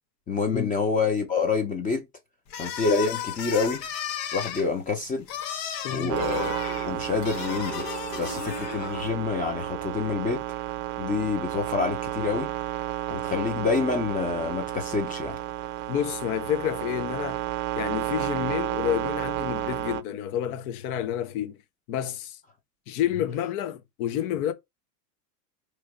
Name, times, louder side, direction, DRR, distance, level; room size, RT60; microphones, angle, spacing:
voice 1, 0.3-2.0 2.5-3.8 4.3-5.3 5.9-6.5 6.8-7.9 8.2-10.4 11.0-12.5 13.1-15.4, left 4 dB, 15° left, 0.6 m, -27 dB
sound 1, 2.5-9.1, left 9 dB, 85° left, 1.1 m, -35 dB
voice 2, 5.8-6.2 15.9-17.4 17.8-21.6 21.9-22.4 22.9-24.5, left 10 dB, 65° left, 0.9 m, -29 dB
sound 2, 6.1-20.0, right 15 dB, 65° right, 0.6 m, -32 dB
3.2 x 2.9 x 4.6 m
supercardioid pair, 130°, 48 cm